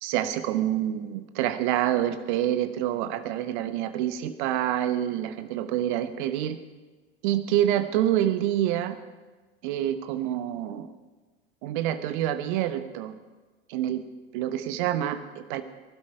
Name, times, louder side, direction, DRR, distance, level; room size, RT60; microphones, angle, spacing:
voice 1, 0.0-6.6 7.2-9.0 9.6-10.9 11.6-13.1 13.7-14.0 14.3-15.6, right 12 dB, 55° right, 10 dB, 1.2 m, -27 dB
19.5 x 12.0 x 4.8 m, 1.3 s
figure-of-eight pair, 80°, 30 cm